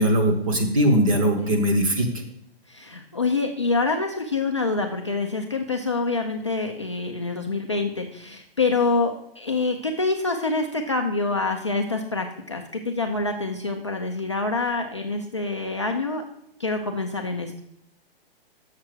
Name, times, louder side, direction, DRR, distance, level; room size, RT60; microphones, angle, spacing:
voice 1, 0.0-2.1, equal, 35° right, 4 dB, 1.3 m, -20 dB
voice 2, 2.7-16.2 16.6-17.6, left 3 dB, 30° left, 1 dB, 0.4 m, -26 dB
6.6 x 5.8 x 6.0 m, 0.73 s
hypercardioid pair, 180°, 30 cm